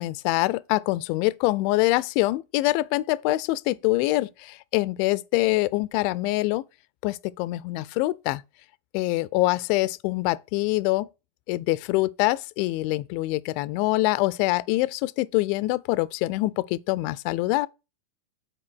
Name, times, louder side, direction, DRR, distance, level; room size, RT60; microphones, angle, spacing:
voice 1, 0.0-6.6 7.0-8.4 8.9-11.1 11.5-17.7, left 19 dB, 45° left, 0.4 m, -25 dB
6.0 x 4.3 x 6.1 m
figure-of-eight pair, 90°, 0 cm